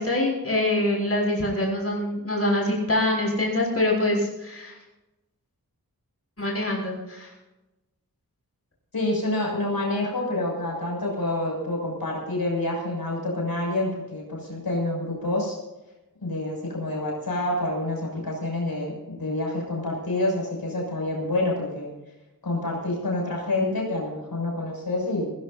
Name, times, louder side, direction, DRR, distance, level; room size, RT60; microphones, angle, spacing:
voice 1, 0.0-4.7 6.4-7.3, left 1 dB, 40° left, -2 dB, 6.5 m, -25 dB
voice 2, 8.9-15.6 16.2-21.9 22.4-25.3, left 2 dB, 80° left, -2 dB, 6.8 m, -27 dB
20.5 x 19.0 x 2.7 m, 1.0 s
wide cardioid pair, 65°, 36 cm